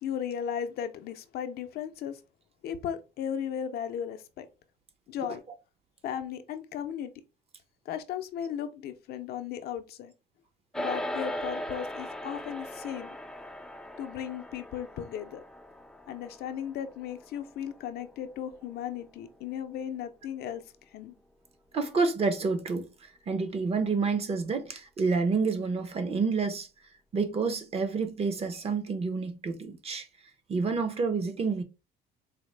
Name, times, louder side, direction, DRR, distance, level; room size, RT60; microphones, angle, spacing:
voice 1, 0.0-2.2 2.6-4.5 5.1-5.4 6.0-7.1 7.9-10.1 10.8-13.2 14.0-15.4 16.1-20.6 20.9-21.1, left 9 dB, 70° left, 0.5 m, -36 dB
sound 1, 10.7-20.3, left 1 dB, 5° left, 0.3 m, -40 dB
voice 2, 21.7-26.7 27.1-30.1 30.5-31.6, right 4 dB, 35° right, 0.7 m, -29 dB
4.0 x 2.0 x 3.2 m
cardioid pair, 110°, 17 cm